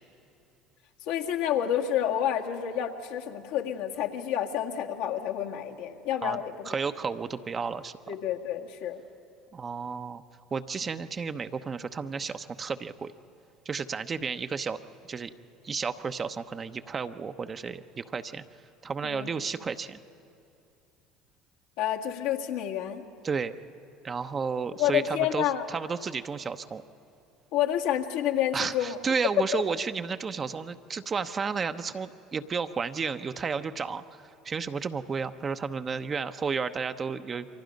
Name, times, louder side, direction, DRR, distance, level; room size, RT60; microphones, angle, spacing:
voice 1, 1.0-6.7 8.1-9.0 19.0-19.3 21.8-23.0 24.8-25.6 27.5-29.0 29.5-29.6, left 10 dB, 70° left, 1 dB, 1.8 m, -29 dB
voice 2, 6.6-7.9 9.5-10.2 10.5-13.1 13.6-14.8 15.1-15.3 15.6-18.4 18.8-20.0 23.2-23.5 24.0-26.8 28.5-34.0 34.4-37.5, right 5 dB, 35° right, 9 dB, 0.9 m, -32 dB
29.0 x 24.5 x 5.3 m, 2.7 s
hypercardioid pair, 70°, 0 cm